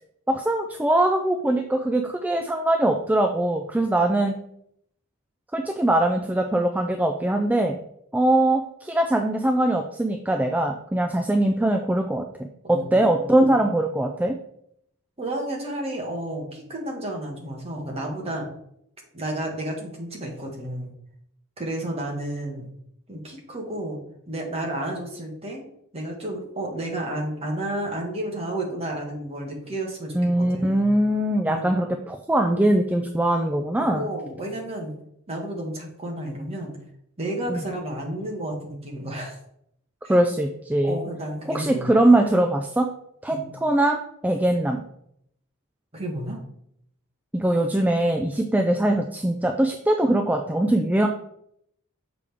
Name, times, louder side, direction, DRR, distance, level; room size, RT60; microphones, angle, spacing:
voice 1, 0.3-4.3 5.5-7.8 8.1-12.2 12.7-14.3 30.1-34.1 37.5-37.6 40.1-41.0 41.5-42.9 43.2-44.8 47.3-51.1, right 1 dB, 5° right, 4 dB, 0.3 m, -22 dB
voice 2, 12.7-13.5 15.2-18.5 19.1-20.9 21.6-22.7 23.1-24.0 24.3-25.6 25.9-30.9 31.4-31.7 33.9-34.9 35.3-36.8 37.2-39.4 40.0-40.1 40.8-41.9 43.3-43.5 45.9-46.4, right 1 dB, 25° right, -1 dB, 1.6 m, -31 dB
6.8 x 5.0 x 3.5 m, 0.73 s
head